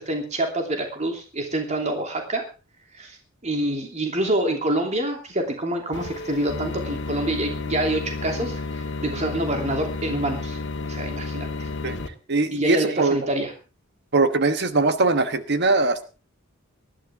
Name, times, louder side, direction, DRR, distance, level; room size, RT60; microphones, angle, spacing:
voice 1, 0.0-2.4 2.9-3.2 3.4-10.6 10.9-11.7 12.5-13.5, right 1 dB, 35° right, 3 dB, 3.0 m, -26 dB
sound 1, 5.9-12.1, left 3 dB, 55° left, 1.8 m, -31 dB
voice 2, 12.3-13.2 14.1-16.0, right 3 dB, 55° right, 10 dB, 1.2 m, -21 dB
19.5 x 13.5 x 3.6 m, 0.33 s
head